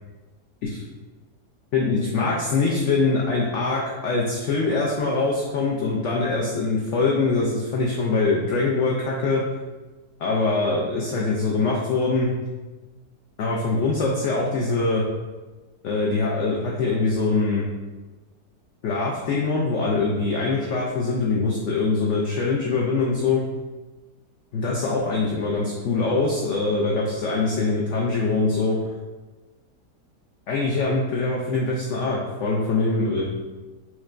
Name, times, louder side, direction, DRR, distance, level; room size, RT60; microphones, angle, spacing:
voice 1, 1.7-9.5 10.2-12.3 13.4-15.0 15.8-17.6 18.8-23.4 24.5-28.8 30.5-33.3, left 3 dB, 75° left, -3 dB, 0.6 m, -23 dB
5.8 x 2.1 x 2.5 m, 1.3 s
omnidirectional pair, 1.8 m